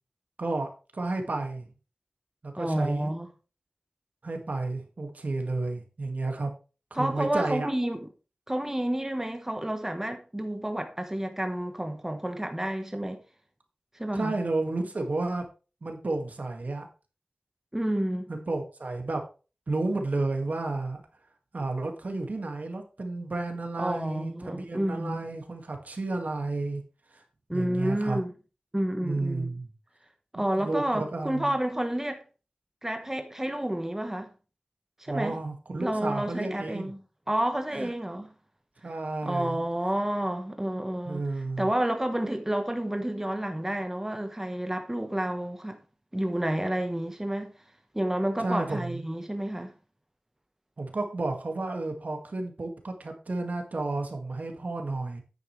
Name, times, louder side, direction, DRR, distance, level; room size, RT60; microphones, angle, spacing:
voice 1, 0.4-1.7 2.4-3.1 4.2-6.5 6.9-7.7 14.1-15.4 15.8-16.9 18.3-19.2 19.7-21.0 21.5-26.8 27.1-27.2 27.5-28.2 29.0-29.7 30.6-31.5 35.1-36.9 37.7-37.9 38.8-39.6 41.1-41.7 48.4-49.2 50.8-55.2, right 2 dB, 70° right, 2.0 m, -32 dB
voice 2, 2.6-3.3 6.9-8.1 8.5-13.2 13.9-14.3 17.7-18.3 23.8-25.3 27.5-28.3 28.7-29.6 30.3-32.2 32.8-34.3 35.0-35.4 35.8-37.0 37.3-38.3 39.2-41.2 41.6-45.8 46.1-47.5 47.9-49.7, right 1 dB, 15° right, 1.2 m, -30 dB
9.7 x 8.9 x 3.3 m
wide cardioid pair, 70°, 3 cm